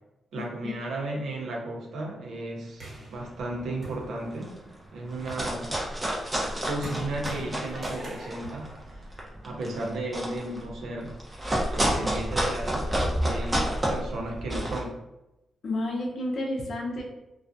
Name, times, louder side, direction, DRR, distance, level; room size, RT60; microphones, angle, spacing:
voice 1, 0.3-4.6 4.9-5.8 6.6-11.2 11.8-15.0, right 2 dB, 85° right, 0 dB, 0.5 m, -34 dB
sound 1, 2.8-4.6 5.1-9.7, right 1 dB, 60° right, 1.2 m, -42 dB
sound 2, 3.3-3.6 4.0-4.1 4.3-4.7 5.1-8.0 8.3-14.8, right 1 dB, 20° right, 0.6 m, -29 dB
voice 2, 15.6-17.0, left 1 dB, 55° left, 0 dB, 0.6 m, -30 dB
2.3 x 2.2 x 2.5 m, 0.93 s
cardioid pair, 105°, 0 cm